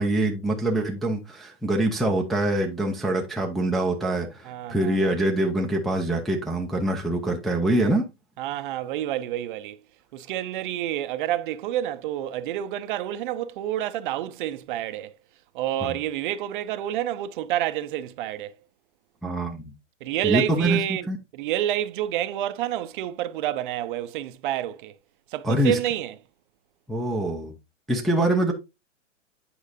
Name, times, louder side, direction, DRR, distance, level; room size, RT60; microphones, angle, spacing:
voice 1, 0.0-8.1 19.2-19.6 20.2-20.8 21.1-21.2 25.4-25.8 26.9-27.5 27.9-28.5, right 1 dB, ahead, 0.5 m, -24 dB
voice 2, 4.4-5.1 8.4-9.8 10.1-15.1 15.5-18.6 20.0-21.1 21.3-25.0 25.3-26.1, right 12 dB, 45° right, 0.6 m, -28 dB
8.4 x 4.7 x 2.5 m
hypercardioid pair, 125°, 36 cm